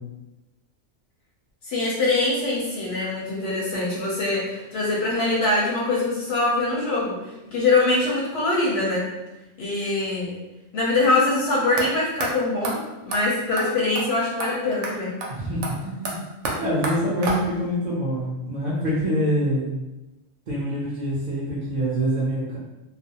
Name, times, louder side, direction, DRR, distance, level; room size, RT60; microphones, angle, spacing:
voice 1, 1.6-9.0 9.6-10.3 10.7-15.1, left 2 dB, 65° left, -4 dB, 0.7 m, -23 dB
sound 1, 11.8-11.9 12.2-12.3 12.6-12.7 13.1-13.2 13.6-13.7 13.9-14.1 14.4-14.5 14.8-14.9 15.2-15.3 15.6-17.7, right 2 dB, 70° right, 0.9 m, -30 dB
voice 2, 15.3-16.2 16.6-19.7 20.5-22.6, equal, 55° right, -7 dB, 0.5 m, -25 dB
2.4 x 2.0 x 2.7 m, 1.0 s
omnidirectional pair, 1.4 m